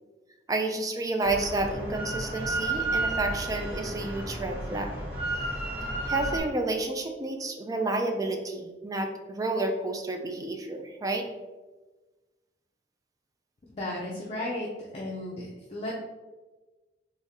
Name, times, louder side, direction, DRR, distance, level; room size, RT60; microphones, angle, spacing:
voice 1, 0.5-5.0 6.1-11.3, right 2 dB, 20° right, 4 dB, 0.4 m, -30 dB
Drill, 1.2-6.4, right 2 dB, 75° right, 1.5 m, -32 dB
voice 2, 13.7-14.7 14.9-15.9, left 1 dB, 35° left, -4 dB, 0.5 m, -34 dB
3.5 x 3.1 x 2.8 m, 1.2 s
head